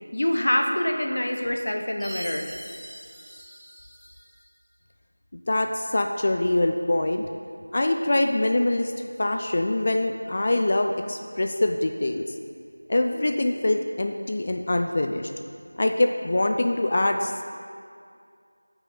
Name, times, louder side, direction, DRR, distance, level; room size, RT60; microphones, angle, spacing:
voice 1, 0.1-2.5, left 1 dB, 50° left, 3 dB, 1.0 m, -25 dB
Chime, 2.0-4.4, equal, ahead, 0.8 m, -42 dB
voice 2, 5.5-7.2 7.7-8.9 9.2-12.2 12.9-15.3 15.8-17.4, left 1 dB, 30° left, 4 dB, 0.4 m, -24 dB
16.5 x 6.0 x 3.9 m, 2.3 s
figure-of-eight pair, 175°, 0 cm